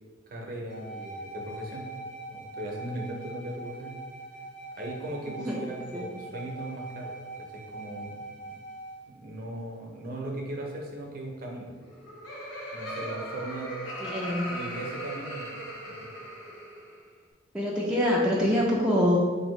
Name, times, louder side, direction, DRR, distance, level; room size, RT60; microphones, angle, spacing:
voice 1, 0.3-1.9 2.3-4.0 4.7-7.1 7.4-8.6 9.1-11.7 12.7-13.8 14.5-15.5 15.9-16.1, right 1 dB, 50° right, -1 dB, 0.6 m, -38 dB
sound 1, 0.7-9.0, right 2 dB, 45° left, 0.9 m, -42 dB
voice 2, 5.3-6.1 14.0-14.5 17.5-19.2, equal, 5° right, -6 dB, 0.4 m, -26 dB
Laughter, 11.8-17.0, equal, 75° left, 0.7 m, -38 dB
4.0 x 2.7 x 3.1 m, 1.5 s
head